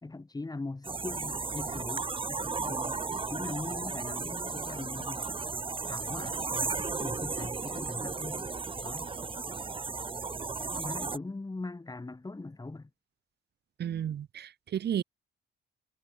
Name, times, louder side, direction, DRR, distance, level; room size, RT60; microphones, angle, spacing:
voice 1, 0.0-5.2 5.9-8.5 8.8-9.1 10.7-12.9, left 3 dB, 20° left, 5.6 m, -41 dB
sound 1, 0.8-11.2, right 4 dB, 25° right, 1.7 m, -35 dB
voice 2, 13.8-15.0, right 9 dB, 55° right, 1.3 m, -33 dB
cardioid pair, 90°, 20 cm